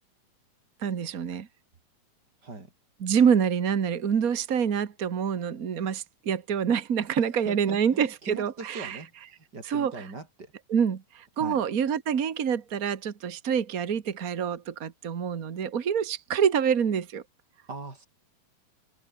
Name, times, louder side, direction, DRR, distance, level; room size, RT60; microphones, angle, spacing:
voice 1, 0.8-1.5 3.0-9.0 9.6-10.1 10.7-17.2, right 7 dB, 70° right, 0.8 m, -26 dB
voice 2, 7.2-9.1 9.5-10.5 11.4-11.6 17.7-18.1, right 3 dB, 30° right, 5.0 m, -40 dB
omnidirectional pair, 3.9 m